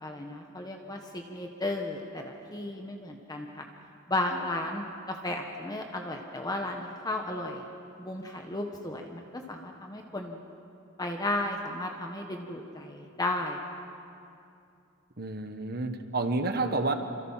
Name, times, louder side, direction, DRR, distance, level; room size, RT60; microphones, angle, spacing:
voice 1, 0.0-3.6 4.1-7.7 8.0-10.4 11.0-13.6 16.5-16.6, left 2 dB, 20° left, 2 dB, 1.4 m, -34 dB
voice 2, 15.2-16.9, right 3 dB, 50° right, 7 dB, 1.5 m, -29 dB
28.0 x 26.5 x 5.9 m, 2.6 s
head